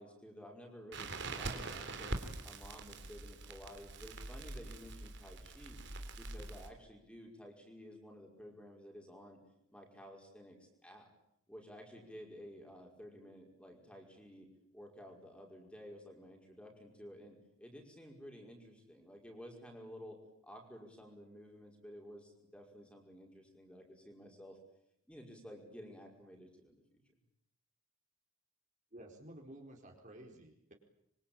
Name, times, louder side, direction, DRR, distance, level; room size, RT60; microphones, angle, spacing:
voice 1, 0.0-2.2 2.4-5.8 6.2-9.4 9.7-11.1 11.5-20.2 20.4-24.6 25.1-27.0, equal, 5° left, 1 dB, 5.3 m, -53 dB
Crackle, 0.9-6.7, right 2 dB, 55° right, 3.5 m, -44 dB
voice 2, 28.9-30.7, right 1 dB, 35° right, 2 dB, 4.4 m, -53 dB
26.0 x 24.5 x 8.8 m, 0.75 s
head